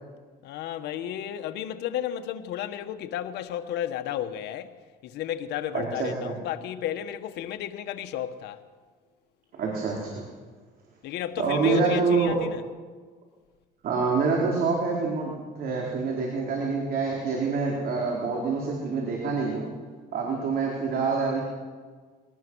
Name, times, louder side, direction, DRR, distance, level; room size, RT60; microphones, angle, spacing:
voice 1, 0.4-4.7 5.0-8.6 11.0-12.6, left 11 dB, 80° left, 1.5 m, -33 dB
voice 2, 5.7-6.4 9.5-10.2 11.4-12.4 13.8-19.7 20.1-21.4, right 4 dB, 60° right, 4.4 m, -26 dB
23.0 x 19.0 x 6.4 m
cardioid pair, 110°, 17 cm